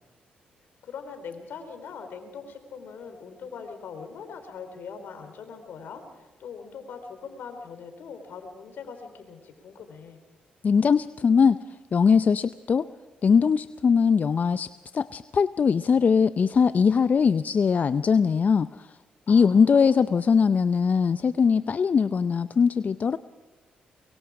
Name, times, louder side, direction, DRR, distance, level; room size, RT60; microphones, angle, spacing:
voice 1, 0.8-6.0 6.4-10.2 19.3-20.0, left 5 dB, 70° left, 7 dB, 4.0 m, -41 dB
voice 2, 10.6-11.6 11.9-12.9 13.2-19.0 19.3-23.2, left 6 dB, 50° left, 14 dB, 0.6 m, -21 dB
23.5 x 23.5 x 4.9 m, 1.2 s
supercardioid pair, 50°, 4 cm